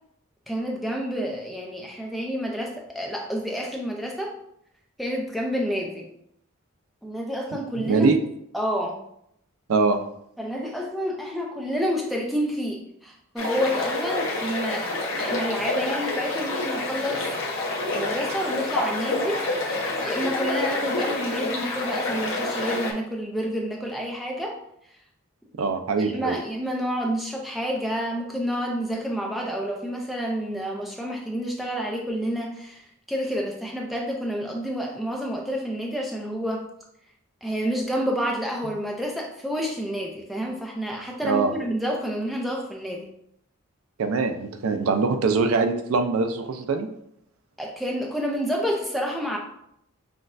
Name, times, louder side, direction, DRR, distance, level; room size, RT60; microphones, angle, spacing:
voice 1, 0.5-4.3 5.0-6.1 7.0-8.1 8.5-9.0 10.4-14.9 15.2-17.3 17.9-24.6 26.0-36.7 37.4-43.1 47.6-49.4, equal, ahead, -1 dB, 0.5 m, -29 dB
voice 2, 7.9-8.2 9.7-10.0 25.6-26.4 41.2-41.5 44.0-46.9, right 4 dB, 75° right, 7 dB, 0.4 m, -23 dB
sound 1, 13.4-22.9, left 2 dB, 60° left, 0.8 m, -28 dB
6.0 x 2.3 x 2.5 m, 0.73 s
head